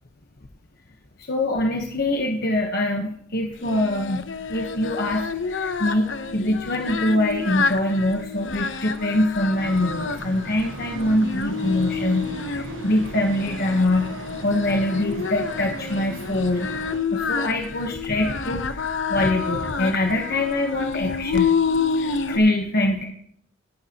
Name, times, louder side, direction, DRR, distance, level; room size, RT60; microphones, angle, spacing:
voice 1, 1.2-16.7 17.1-21.5 22.0-23.0, left 1 dB, 55° left, 2 dB, 1.1 m, -24 dB
Singing, 3.6-22.4, left 5 dB, 75° left, 0.9 m, -29 dB
sound 1, 9.6-17.0, right 2 dB, 90° right, 1.2 m, -38 dB
17.5 x 11.5 x 2.9 m, 0.68 s
head